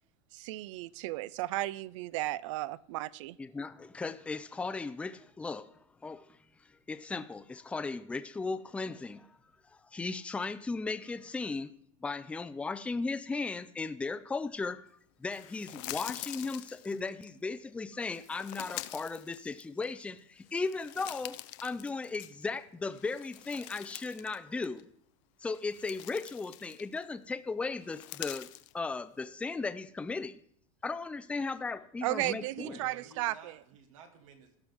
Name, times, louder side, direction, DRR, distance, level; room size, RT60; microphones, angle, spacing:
voice 1, 0.3-3.4 32.0-33.5, right 17 dB, 70° right, 21 dB, 0.4 m, -34 dB
voice 2, 3.4-5.7 6.0-6.3 6.9-9.4 9.7-11.7 12.0-14.8 15.2-24.9 25.4-28.5 28.7-30.4 30.8-32.8, left 4 dB, 5° left, 11 dB, 0.4 m, -36 dB
sound 1, 15.3-17.3 18.0-20.0 20.4-22.6 22.9-24.4 24.6-24.8 25.4-27.1 27.8-28.7, left 18 dB, 65° left, 0.5 m, -45 dB
voice 3, 32.5-34.6, right 6 dB, 90° right, 6 dB, 1.6 m, -52 dB
16.0 x 6.1 x 3.5 m, 0.63 s
supercardioid pair, 125°, 17 cm